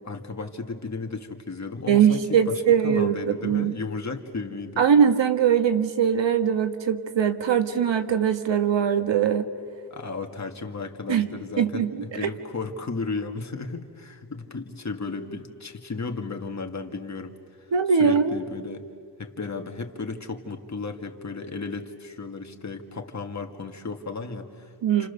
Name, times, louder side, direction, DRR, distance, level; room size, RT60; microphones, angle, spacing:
voice 1, 0.0-4.8 9.9-17.4 17.9-18.8 19.2-24.7 25.0-25.1, left 4 dB, 40° left, 4 dB, 2.2 m, -34 dB
voice 2, 1.9-3.7 4.8-9.5 11.1-11.3 11.6-12.3 17.7-18.4 24.8-25.1, right 8 dB, 80° right, 8 dB, 1.6 m, -21 dB
30.0 x 28.5 x 6.9 m, 2.2 s
wide cardioid pair, 100°, 43 cm